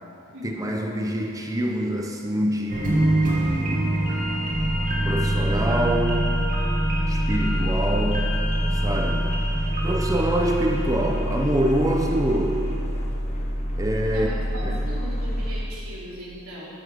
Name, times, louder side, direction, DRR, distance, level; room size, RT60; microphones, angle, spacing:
voice 1, 0.4-4.0 5.0-6.3 7.1-8.3 8.7-9.3 9.8-12.6 13.8-14.3 14.6-14.8, right 1 dB, 15° right, 2 dB, 0.7 m, -25 dB
sound 1, 2.7-12.1 12.5-12.6, right 1 dB, 35° right, 1.9 m, -26 dB
sound 2, 4.5-15.6, equal, 30° left, 1.1 m, -27 dB
voice 2, 14.1-16.7, equal, 65° right, -6 dB, 3.4 m, -38 dB
14.0 x 8.9 x 5.1 m, 2.7 s
head